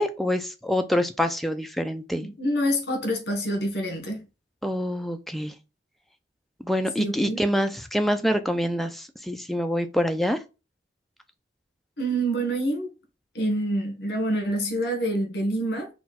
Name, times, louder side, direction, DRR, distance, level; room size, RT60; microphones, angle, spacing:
voice 1, 0.0-2.3 4.6-5.5 6.6-10.4, equal, ahead, 0.4 m, -26 dB
voice 2, 2.1-4.2 7.0-7.4 12.0-12.9 13.3-15.9, right 1 dB, 65° left, 1.5 m, -27 dB
4.3 x 2.3 x 4.1 m
head